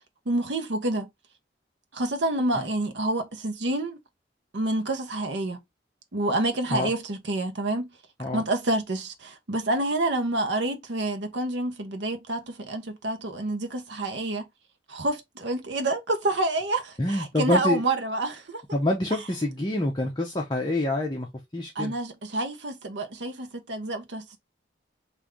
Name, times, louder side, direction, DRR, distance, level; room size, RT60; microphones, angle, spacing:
voice 1, 0.3-1.1 1.9-4.0 4.5-5.6 6.1-7.9 8.3-14.5 14.9-18.6 21.7-24.4, right 2 dB, 70° right, 0.8 m, -28 dB
voice 2, 17.0-17.8 18.7-21.3 21.5-21.9, left 1 dB, 25° left, 0.6 m, -26 dB
3.3 x 2.6 x 3.6 m
head